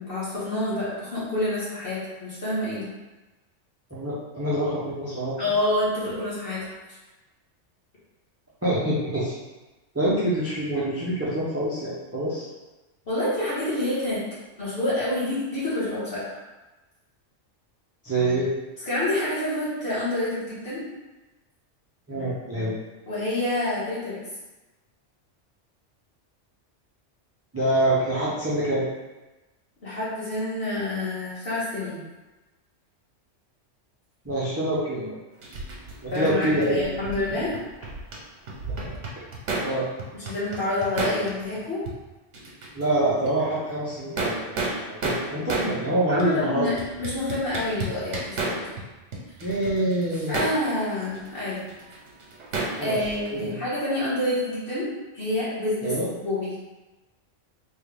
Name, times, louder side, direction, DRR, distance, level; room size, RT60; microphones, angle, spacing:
voice 1, 0.0-2.9 5.4-6.7 13.0-14.2 14.6-16.4 18.8-20.8 23.1-24.2 29.8-32.0 36.1-37.6 40.1-41.8 46.1-48.2 48.4-48.6 50.3-51.7 52.8-56.5, left 1 dB, 50° left, -10 dB, 1.5 m, -27 dB
voice 2, 3.9-5.4 8.6-9.4 9.9-12.5 18.0-18.5 22.1-22.7 27.5-28.8 34.2-35.2 36.0-36.9 38.8-38.9 39.6-39.9 42.7-44.7 45.0-46.7 49.4-50.5 52.8-53.6 55.8-56.1, right 1 dB, 20° right, -8 dB, 0.3 m, -26 dB
sound 1, 35.4-38.2 38.5-39.7 40.0-41.6 41.9-42.0 42.3-42.9 43.2-43.3 43.9-45.7 46.2-46.3 46.8-48.8 49.1-53.5, right 3 dB, 70° right, 1.1 m, -32 dB
3.5 x 2.3 x 3.4 m, 1.1 s
omnidirectional pair, 1.3 m